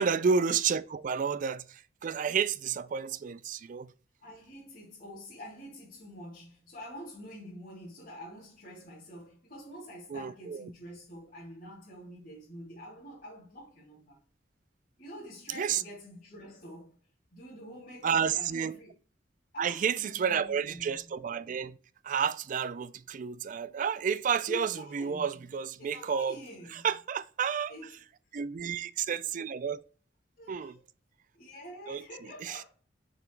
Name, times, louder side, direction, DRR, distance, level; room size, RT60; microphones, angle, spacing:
voice 1, 0.0-3.9 10.1-10.6 15.6-15.8 18.0-18.7 19.6-21.8 22.0-26.4 26.7-27.7 28.3-29.8 30.5-30.8 31.9-32.0 32.4-32.6, right 6 dB, 45° right, 0.3 m, -30 dB
voice 2, 4.2-14.2 15.0-17.0 17.3-18.9 19.5-21.1 24.5-25.4 25.8-26.9 27.7-28.0 30.4-30.7 31.4-32.6, equal, 50° left, 2.8 m, -46 dB
6.9 x 3.0 x 4.6 m
head